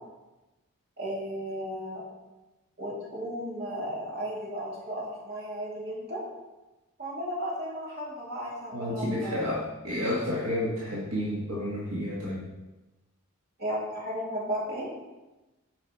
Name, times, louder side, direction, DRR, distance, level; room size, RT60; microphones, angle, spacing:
voice 1, 1.0-2.0 2.8-6.2 7.0-9.4 13.6-14.9, equal, 45° right, -5 dB, 2.5 m, -34 dB
voice 2, 8.7-12.5, left 1 dB, 70° right, -5 dB, 1.5 m, -30 dB
7.7 x 4.9 x 5.6 m, 1.1 s
head